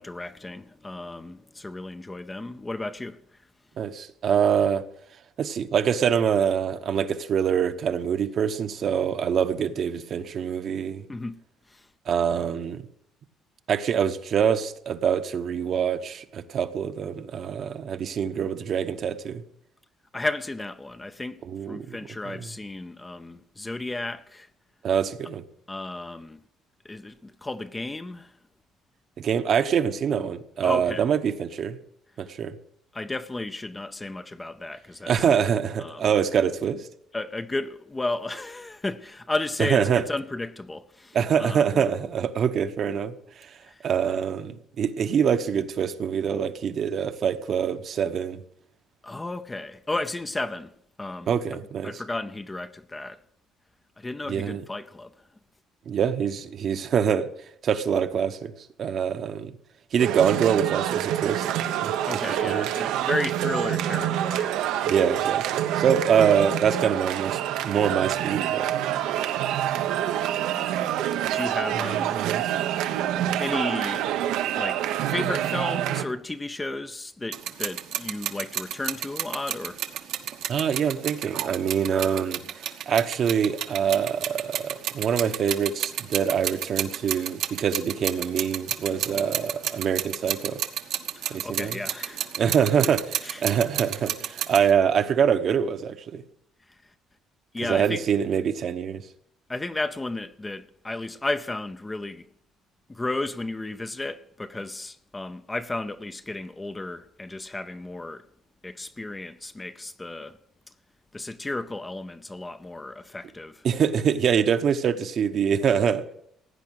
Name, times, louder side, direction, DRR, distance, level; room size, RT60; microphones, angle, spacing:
voice 1, 0.0-3.2 11.1-11.4 11.7-11.8 20.1-21.4 21.7-24.5 25.7-26.4 26.8-28.3 30.6-31.0 32.9-35.1 35.8-36.0 37.1-41.8 43.7-43.8 49.0-50.7 51.0-51.3 51.8-53.2 54.0-55.1 62.1-64.5 64.8-65.1 71.3-72.2 73.4-74.1 74.5-79.8 91.2-92.4 93.2-93.4 97.5-98.0 99.5-102.2 102.9-108.2 108.6-110.4 111.1-113.7, left 2 dB, 15° left, 0.5 m, -33 dB
voice 2, 3.8-4.8 5.4-11.0 12.1-12.8 13.7-19.4 21.4-22.0 22.3-22.5 24.8-25.4 29.2-31.8 32.2-32.5 35.1-36.9 39.6-40.0 41.1-43.5 43.8-48.4 51.3-52.0 54.3-54.6 55.9-57.3 57.6-58.5 58.8-59.5 59.9-61.9 62.4-62.7 64.8-68.7 72.1-72.5 80.5-90.6 91.3-91.8 92.4-96.2 97.6-99.0 113.6-116.1, right 7 dB, 45° right, 0.9 m, -25 dB
sound 1, 60.0-76.0, right 11 dB, 90° right, 0.9 m, -26 dB
sound 2, 77.3-94.7, right 11 dB, 70° right, 1.2 m, -31 dB
16.5 x 9.7 x 6.4 m
cardioid pair, 145°, 0 cm